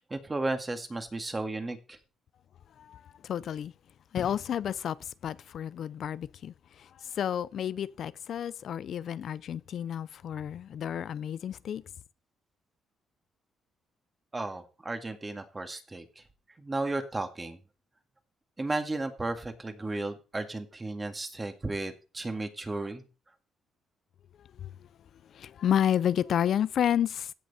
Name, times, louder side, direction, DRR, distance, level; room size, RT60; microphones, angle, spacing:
voice 1, 0.0-2.0 14.3-16.2 16.6-17.6 18.6-23.0, right 2 dB, 20° right, 2.1 m, -34 dB
voice 2, 2.8-3.7 4.1-11.8 24.6-24.8 25.2-27.3, left 9 dB, 65° left, 0.5 m, -31 dB
16.5 x 6.2 x 4.3 m
cardioid pair, 90°, 0 cm